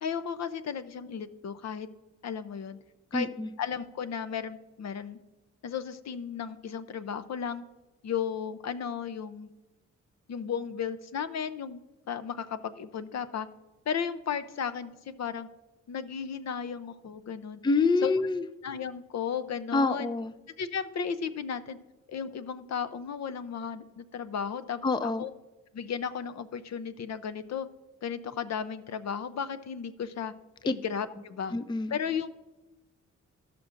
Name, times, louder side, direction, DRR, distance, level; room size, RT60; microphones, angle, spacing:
voice 1, 0.0-1.9 2.2-2.8 3.1-3.3 3.6-5.2 5.6-7.7 8.0-9.5 10.3-11.8 12.1-13.5 13.9-15.5 15.9-17.6 18.0-18.1 18.6-20.1 20.6-21.8 22.1-25.3 25.7-27.7 28.0-30.3 30.6-31.5 31.9-32.4, left 7 dB, 60° left, 13 dB, 0.6 m, -34 dB
voice 2, 3.1-3.5 17.6-18.4 19.7-20.3 24.8-25.2 31.5-31.9, left 3 dB, 15° left, 13 dB, 0.4 m, -26 dB
15.5 x 5.9 x 2.5 m, 1.0 s
cardioid pair, 65°, 30 cm